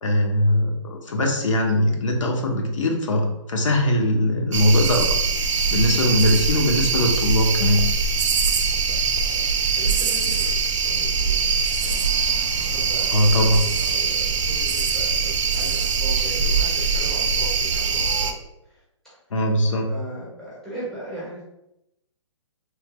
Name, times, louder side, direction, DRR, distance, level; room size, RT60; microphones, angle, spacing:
voice 1, 0.0-5.1 5.7-7.8 13.1-13.7 19.3-19.9, left 1 dB, 75° left, 2 dB, 0.9 m, -20 dB
sound 1, 4.5-18.3, right 5 dB, 70° right, 0.5 m, -22 dB
voice 2, 5.5-6.1 8.0-8.7 9.8-11.5 11.8-13.2 13.6-18.3 18.6-19.2 19.9-21.6, right 1 dB, ahead, -8 dB, 1.4 m, -39 dB
3.3 x 2.9 x 2.2 m, 0.85 s
hypercardioid pair, 140°, 16 cm